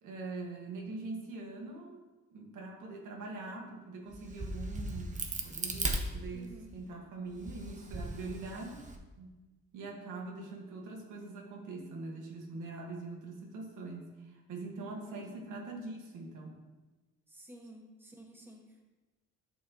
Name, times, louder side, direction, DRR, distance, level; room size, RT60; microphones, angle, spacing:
voice 1, 0.0-2.0 2.3-8.9 9.2-9.4 9.7-16.6, right 3 dB, 80° right, 0 dB, 1.8 m, -43 dB
Crack, 4.1-6.8 7.3-9.0, right 2 dB, 25° right, 1.1 m, -37 dB
voice 2, 6.3-6.7 15.1-15.5 17.3-18.8, right 1 dB, 5° right, -1 dB, 1.7 m, -52 dB
11.0 x 6.3 x 3.1 m, 1.2 s
cardioid pair, 90°, 30 cm